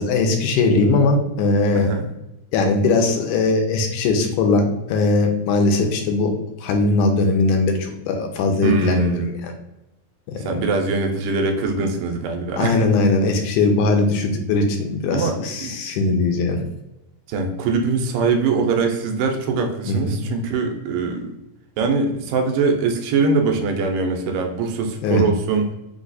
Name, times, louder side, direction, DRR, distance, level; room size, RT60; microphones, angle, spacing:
voice 1, 0.0-1.9 2.5-6.3 6.6-9.5 10.3-10.6 12.6-16.6 19.9-20.2 25.0-25.2, left 3 dB, 80° left, 3 dB, 2.1 m, -20 dB
voice 2, 1.8-2.1 8.6-9.2 10.4-12.9 14.0-14.1 15.1-15.7 17.3-21.3 21.8-25.7, right 4 dB, 85° right, 3 dB, 2.3 m, -22 dB
5.3 x 2.4 x 3.9 m, 0.93 s
omnidirectional pair, 3.7 m